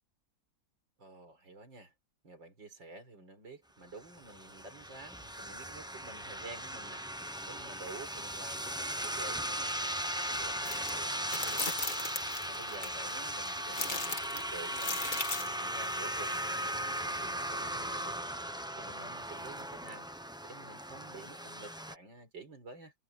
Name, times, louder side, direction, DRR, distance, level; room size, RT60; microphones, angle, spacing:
voice 1, 1.0-1.9 2.2-9.8 10.3-11.8 12.0-15.0 15.4-18.2 18.8-20.1 20.4-22.9, right 3 dB, 75° right, 5.9 m, -50 dB
sound 1, 4.0-22.0, equal, 5° right, 0.6 m, -37 dB
sound 2, 10.6-10.9 11.3-12.9 13.7-15.6, left 3 dB, 25° left, 2.2 m, -37 dB
omnidirectional pair, 2.0 m